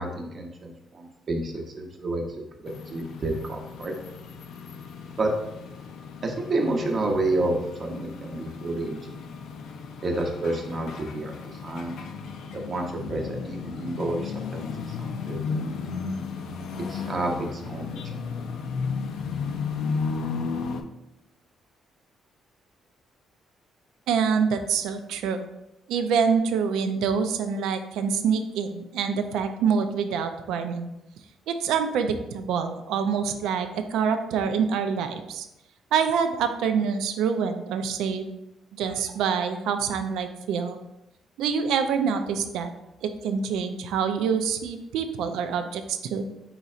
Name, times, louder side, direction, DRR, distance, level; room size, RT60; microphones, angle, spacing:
voice 1, 0.0-2.5 2.9-3.9 5.2-5.3 6.2-9.3 10.0-12.0 12.5-15.6 16.9-18.2, right 2 dB, 40° right, 2 dB, 0.7 m, -30 dB
sound 1, 2.7-20.8, left 5 dB, 75° left, 0.4 m, -34 dB
voice 2, 24.1-25.5 25.9-30.9 31.5-35.5 35.9-38.3 38.7-40.8 41.4-42.7 43.0-46.2, right 6 dB, 90° right, 8 dB, 0.3 m, -26 dB
4.2 x 3.9 x 2.4 m, 0.90 s
cardioid pair, 110°, 0 cm